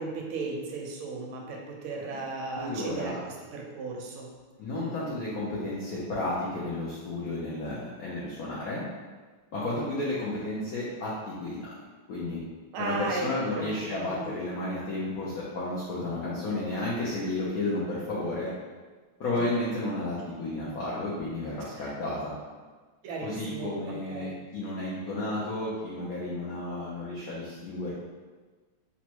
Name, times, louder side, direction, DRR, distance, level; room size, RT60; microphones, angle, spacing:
voice 1, 0.0-4.3 4.7-4.9 9.7-9.9 12.7-13.3 13.5-13.7 14.2-14.3 21.8-21.9 23.0-24.3, right 3 dB, 75° right, 0 dB, 1.4 m, -35 dB
voice 2, 2.6-3.2 4.6-8.8 9.5-11.1 11.4-11.6 12.1-12.4 12.8-18.5 19.2-22.3 23.2-27.9, left 2 dB, 75° left, -7 dB, 0.8 m, -32 dB
4.1 x 2.1 x 4.4 m, 1.4 s
omnidirectional pair, 2.4 m